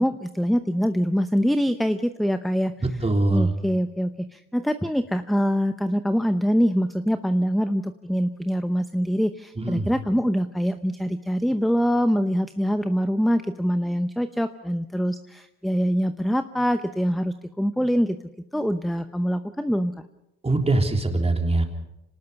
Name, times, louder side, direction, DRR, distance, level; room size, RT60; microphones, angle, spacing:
voice 1, 0.0-2.7 3.3-18.2 18.5-19.9, equal, ahead, 10 dB, 0.8 m, -24 dB
voice 2, 3.0-3.5 9.6-9.9 20.4-21.6, right 2 dB, 20° right, 3 dB, 3.5 m, -22 dB
26.0 x 19.0 x 5.8 m, 0.88 s
cardioid pair, 90°, 30 cm